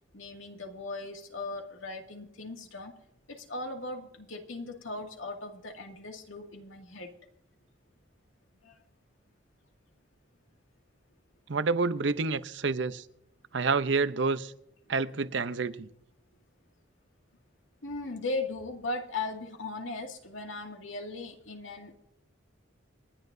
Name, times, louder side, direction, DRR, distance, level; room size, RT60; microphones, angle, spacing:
voice 1, 0.1-2.9 3.3-7.1 8.6-8.8 17.8-22.0, left 2 dB, 85° left, 2.2 m, -38 dB
voice 2, 11.5-13.0 13.5-14.5 14.9-15.9, right 4 dB, 65° right, 0.7 m, -28 dB
28.5 x 10.0 x 2.7 m
head